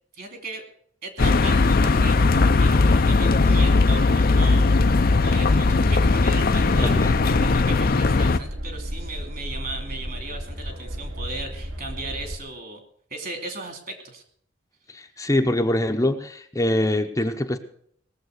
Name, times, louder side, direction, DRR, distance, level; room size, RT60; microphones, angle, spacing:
voice 1, 0.1-0.6 1.0-7.0 7.4-12.8 13.1-14.2, right 2 dB, 50° right, 5 dB, 2.7 m, -36 dB
sound 1, 1.2-8.4, left 3 dB, 50° left, 0.6 m, -18 dB
sound 2, 1.7-12.4, equal, 80° right, 3.1 m, -34 dB
voice 2, 6.8-7.1 14.9-17.6, left 1 dB, 15° left, 5 dB, 0.8 m, -24 dB
19.0 x 7.4 x 6.5 m, 0.64 s
head